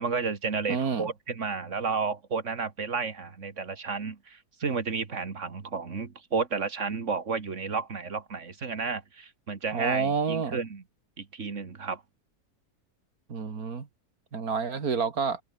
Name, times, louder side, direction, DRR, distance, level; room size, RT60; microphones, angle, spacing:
voice 1, 0.0-10.8 11.2-12.0, right 5 dB, 50° right, 2.2 m, -32 dB
voice 2, 0.7-1.1 9.7-10.6 13.3-13.9 14.3-15.4, right 5 dB, 65° right, 2.5 m, -28 dB
omnidirectional pair, 1.7 m